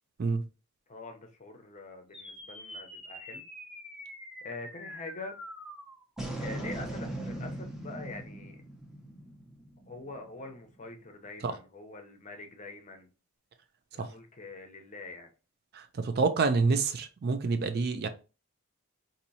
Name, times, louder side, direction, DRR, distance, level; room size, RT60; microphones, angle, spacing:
voice 1, 0.9-3.4 4.4-5.3 6.4-8.6 9.9-13.1 13.9-15.3, left 3 dB, 35° left, 0.7 m, -44 dB
sound 1, 2.1-10.7, right 1 dB, ahead, 0.7 m, -41 dB
voice 2, 15.7-18.1, right 4 dB, 45° right, 0.4 m, -27 dB
4.3 x 2.7 x 2.7 m
head